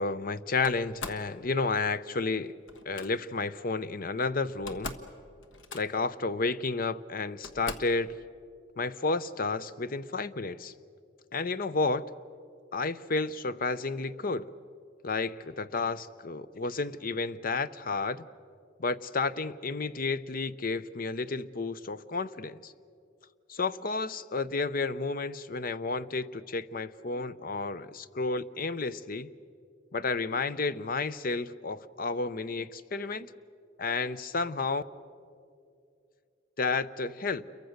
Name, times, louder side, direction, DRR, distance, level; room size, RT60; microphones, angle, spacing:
voice 1, 0.0-2.5 2.9-5.0 5.7-8.2 8.8-10.7 11.3-12.0 12.7-14.5 15.0-18.3 18.8-22.7 23.5-29.3 29.9-33.3 33.8-34.8 36.6-37.4, left 3 dB, 45° left, 15 dB, 0.6 m, -31 dB
Slam, 0.6-1.3 2.7-3.1 4.2-4.3 4.5-5.1 5.4-6.1 6.9-7.0 7.4-8.0, left 3 dB, 85° left, 1.4 m, -41 dB
29.0 x 23.0 x 6.5 m, 2.4 s
head